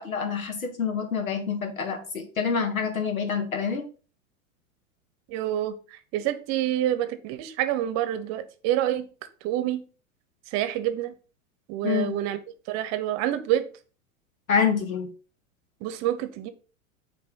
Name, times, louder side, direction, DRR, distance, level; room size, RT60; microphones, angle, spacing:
voice 1, 0.0-3.8 11.8-12.1 14.5-15.1, left 6 dB, 85° left, 7 dB, 1.4 m, -27 dB
voice 2, 5.3-9.1 9.4-9.9 10.5-11.1 11.7-12.4 12.7-13.7 15.8-16.5, right 12 dB, 40° right, 11 dB, 0.9 m, -27 dB
8.7 x 3.3 x 3.8 m, 0.37 s
hypercardioid pair, 95°, 40 cm